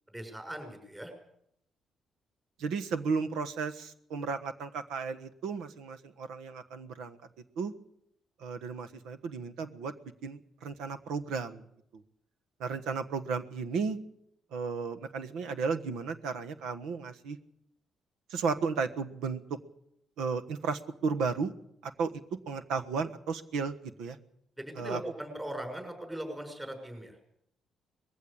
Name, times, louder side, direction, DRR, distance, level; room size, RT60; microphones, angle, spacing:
voice 1, 0.1-1.1 24.6-27.2, right 1 dB, 15° right, 5 dB, 6.1 m, -40 dB
voice 2, 2.6-7.2 7.6-7.7 8.4-9.9 10.2-11.6 12.6-14.0 14.5-17.4 18.3-19.4 20.2-21.5 21.8-22.1 22.5-24.2 24.8-25.0, right 5 dB, 90° right, 10 dB, 1.3 m, -34 dB
21.0 x 15.0 x 8.6 m, 0.75 s
cardioid pair, 90°, 0 cm